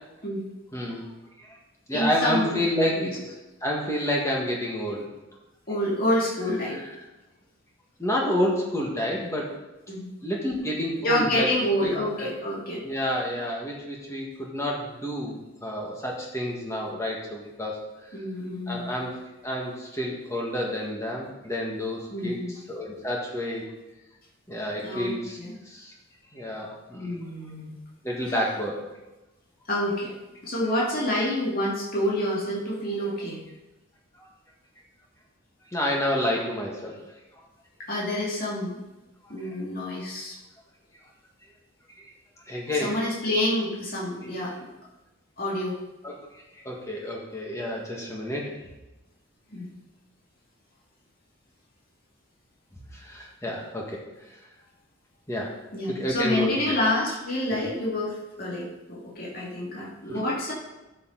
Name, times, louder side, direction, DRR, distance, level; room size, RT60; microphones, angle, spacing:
voice 1, 0.7-1.1 1.4-1.6 1.9-3.3 3.6-5.1 6.7-6.9 8.0-9.5 10.2-11.5 11.8-12.3 12.8-17.8 18.7-19.1 19.4-23.7 24.5-25.4 25.7-25.9 26.3-27.2 28.0-28.8 35.7-37.0 42.5-43.0 46.0-48.5 52.9-54.0 54.3-54.4 55.3-55.5 55.9-56.7 57.5-57.7 60.1-60.2, left 1 dB, 15° left, -2 dB, 1.7 m, -29 dB
voice 2, 1.9-2.6 3.0-3.1 5.7-6.8 9.9-10.1 11.0-12.8 18.1-18.9 22.1-22.5 24.8-25.1 25.4-25.5 27.0-27.8 28.3-28.4 29.7-30.1 30.4-33.4 37.8-38.8 39.3-40.3 42.8-44.7 45.4-45.8 49.5-49.7 55.7-60.5, left 1 dB, 45° left, -5 dB, 2.3 m, -28 dB
12.0 x 6.9 x 4.0 m, 1.0 s
head